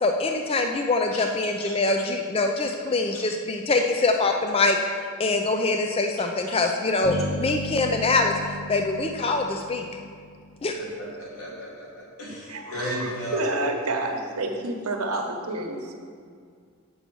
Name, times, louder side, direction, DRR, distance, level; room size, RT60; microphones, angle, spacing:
voice 1, 0.0-4.8 5.2-9.9 10.6-10.8, left 3 dB, 25° left, 4 dB, 0.4 m, -24 dB
Bass guitar, 7.0-10.8, left 1 dB, 45° left, 0.8 m, -35 dB
voice 2, 10.8-13.4, equal, 80° left, -4 dB, 2.5 m, -35 dB
voice 3, 12.5-15.9, right 2 dB, 85° right, 2 dB, 1.1 m, -29 dB
8.0 x 5.4 x 6.2 m, 2.1 s
head